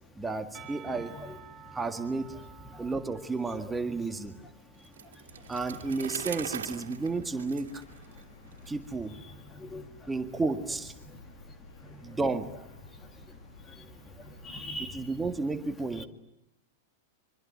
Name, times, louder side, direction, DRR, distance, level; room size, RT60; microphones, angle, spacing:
voice 1, 0.2-1.2 1.7-2.4 2.8-4.3 5.5-7.8 8.7-9.2 10.1-10.9 12.0-12.6 14.8-16.1, right 3 dB, 10° right, 6 dB, 1.8 m, -32 dB
Percussion, 0.5-5.4, right 9 dB, 30° right, 3.3 m, -52 dB
voice 2, 1.1-1.8 2.7-2.9 4.8-5.5 8.1-8.6 9.2-10.1 11.0-11.5 11.8-12.2 12.9-15.1 15.9-16.1, left 1 dB, 15° left, 9 dB, 2.1 m, -46 dB
Bicycle, 4.8-8.7, right 8 dB, 85° right, 2.6 m, -41 dB
sound 1, 5.3-15.1, left 2 dB, 90° left, 5.2 m, -53 dB
25.0 x 24.5 x 9.6 m, 0.81 s
hypercardioid pair, 115°, 0 cm